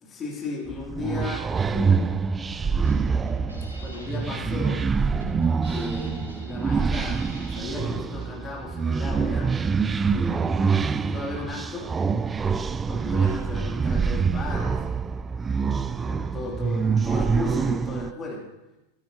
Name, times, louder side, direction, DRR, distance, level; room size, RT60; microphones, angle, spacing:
voice 1, 0.1-2.4 3.8-5.2 5.7-9.5 10.1-11.9 12.9-15.0 15.6-18.4, left 3 dB, 25° left, -3 dB, 3.1 m, -36 dB
sound 1, 0.7-18.1, right 5 dB, 15° right, 0.3 m, -25 dB
Drum kit, 2.5-8.4, left 2 dB, 90° right, 2.0 m, -42 dB
14.0 x 12.5 x 2.9 m, 0.96 s
figure-of-eight pair, 90°, 0 cm